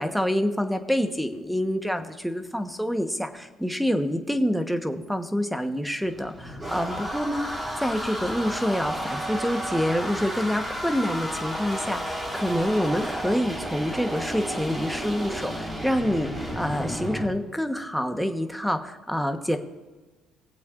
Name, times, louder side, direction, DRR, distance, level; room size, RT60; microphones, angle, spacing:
voice 1, 0.0-19.6, equal, ahead, 7 dB, 1.1 m, -27 dB
sound 1, 6.0-17.3, equal, 25° right, 4.0 m, -32 dB
21.0 x 7.9 x 2.5 m, 1.2 s
supercardioid pair, 90°, 0 cm